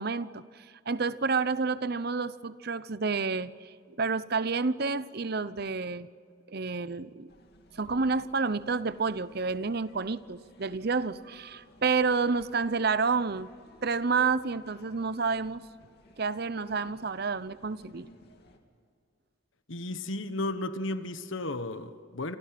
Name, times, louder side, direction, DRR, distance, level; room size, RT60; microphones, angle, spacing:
voice 1, 0.0-6.1 6.5-7.3 7.7-13.5 13.8-15.6 16.2-18.1, right 4 dB, 50° right, 0.8 m, -29 dB
sound 1, 7.3-18.6, left 1 dB, 50° left, 2.8 m, -58 dB
voice 2, 19.7-22.4, left 2 dB, 70° left, 1.4 m, -34 dB
28.0 x 27.5 x 6.0 m
head